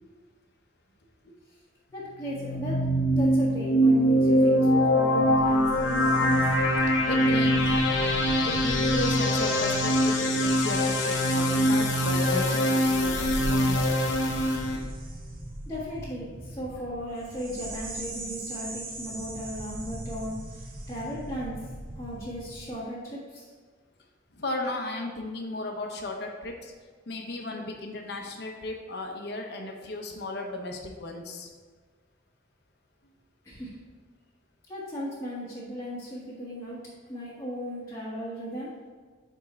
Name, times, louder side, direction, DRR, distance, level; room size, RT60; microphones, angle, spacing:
voice 1, 1.9-6.4 7.1-7.8 15.7-21.7 22.0-23.5 33.4-33.8 34.7-36.8 37.1-38.7, equal, 15° left, -8 dB, 1.4 m, -36 dB
sound 1, 2.2-14.8, equal, 90° left, 1.0 m, -23 dB
sound 2, 5.2-22.8, right 1 dB, 45° right, 0.9 m, -40 dB
voice 2, 7.0-7.6 8.0-13.9 24.4-26.5 27.1-31.5, left 2 dB, 55° left, 2 dB, 0.8 m, -35 dB
8.7 x 3.6 x 4.3 m, 1.5 s
head